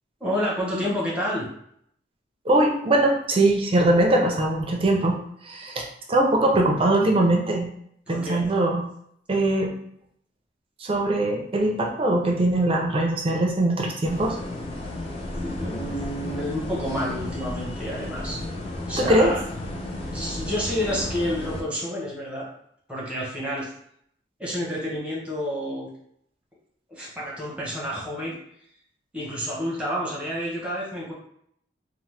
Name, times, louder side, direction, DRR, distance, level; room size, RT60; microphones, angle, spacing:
voice 1, 0.2-1.5 8.1-8.5 15.3-18.4 18.8-19.4 20.0-22.5 22.9-23.7 24.4-25.9 26.9-28.4 29.1-31.1, equal, 5° right, -5 dB, 0.8 m, -29 dB
voice 2, 2.5-5.2 5.4-7.7 8.1-8.8 9.3-9.7 10.8-14.4 19.0-19.3, right 1 dB, 30° right, 0 dB, 0.4 m, -21 dB
sound 1, 14.0-21.6, left 1 dB, 30° left, 0.5 m, -33 dB
2.8 x 2.0 x 3.1 m, 0.69 s
head